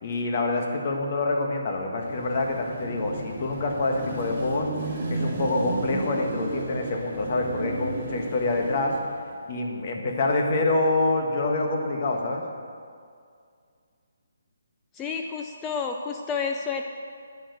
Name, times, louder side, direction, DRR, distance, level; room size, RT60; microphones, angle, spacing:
voice 1, 0.0-4.7 5.1-8.9 9.5-12.4, left 2 dB, 35° left, 1 dB, 1.6 m, -26 dB
Car passing by / Traffic noise roadway noise / Engine, 2.0-9.4, right 2 dB, 30° right, 2.8 m, -33 dB
voice 2, 14.9-16.8, left 5 dB, 10° left, 3 dB, 0.4 m, -30 dB
10.5 x 8.9 x 6.8 m, 2.2 s
hypercardioid pair, 170°, 0 cm